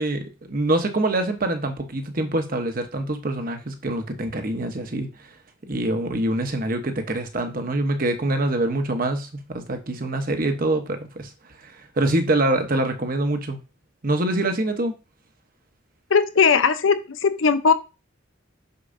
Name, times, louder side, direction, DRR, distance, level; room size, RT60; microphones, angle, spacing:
voice 1, 0.0-5.1 5.7-11.3 11.6-13.6 14.0-14.9, right 1 dB, 45° right, 6 dB, 1.0 m, -25 dB
voice 2, 16.1-17.7, left 5 dB, 80° left, 10 dB, 0.7 m, -18 dB
6.7 x 6.1 x 2.6 m, 0.30 s
head